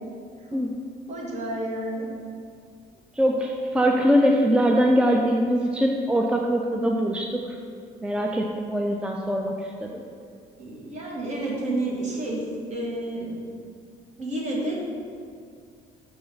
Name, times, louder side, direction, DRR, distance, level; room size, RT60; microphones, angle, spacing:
voice 1, 1.1-2.1 10.6-12.4 12.7-13.5 14.2-14.7, right 1 dB, 45° right, -3 dB, 1.6 m, -30 dB
voice 2, 3.2-7.6 8.0-9.9, equal, 5° right, 1 dB, 0.4 m, -22 dB
5.8 x 3.8 x 5.5 m, 2.2 s
cardioid pair, 110°, 17 cm